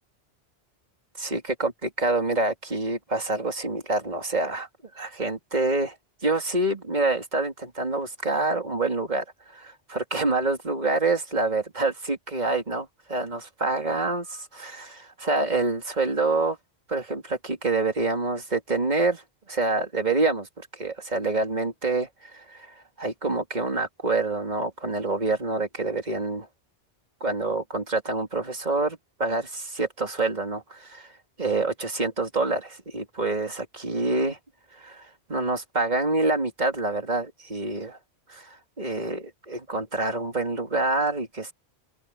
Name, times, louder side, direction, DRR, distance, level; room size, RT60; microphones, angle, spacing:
voice 1, 1.2-4.7 4.9-5.9 6.2-16.6 16.9-19.2 19.5-26.5 27.2-31.1 31.4-34.4 34.7-38.0 38.3-41.5, right 3 dB, 40° right, 3.1 m, -27 dB
open air
omnidirectional pair, 1.1 m